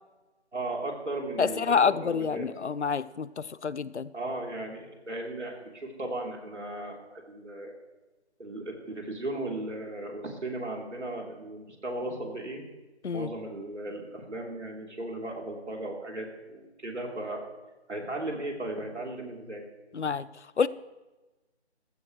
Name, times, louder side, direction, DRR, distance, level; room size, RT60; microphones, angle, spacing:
voice 1, 0.5-2.5 4.1-7.7 8.4-12.6 13.1-17.4 17.9-19.6, right 2 dB, 85° right, 0 dB, 3.5 m, -36 dB
voice 2, 1.4-4.1 13.0-13.3 19.9-20.3 20.6-20.7, left 6 dB, 75° left, 18 dB, 0.7 m, -27 dB
16.0 x 15.0 x 3.2 m, 1.1 s
figure-of-eight pair, 170°, 34 cm